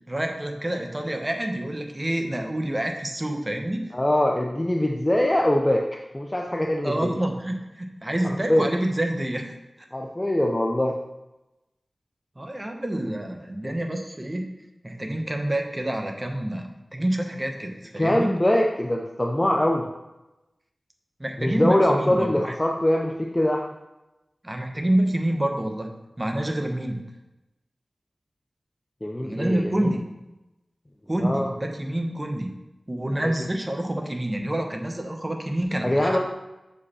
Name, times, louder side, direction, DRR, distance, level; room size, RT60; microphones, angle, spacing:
voice 1, 0.1-3.9 6.8-9.5 9.8-9.9 12.4-14.5 14.8-18.4 21.2-22.5 24.4-25.9 26.2-27.0 29.2-30.0 31.1-32.5 32.9-36.2, right 1 dB, 20° right, 3 dB, 0.9 m, -27 dB
voice 2, 3.9-5.8 6.1-7.1 8.2-8.7 9.9-11.0 18.0-19.9 21.4-23.6 29.0-29.9 31.2-31.5 33.2-33.3 35.8-36.2, left 1 dB, 20° left, 0 dB, 0.6 m, -23 dB
6.6 x 5.2 x 4.2 m, 0.98 s
wide cardioid pair, 85°, 0 cm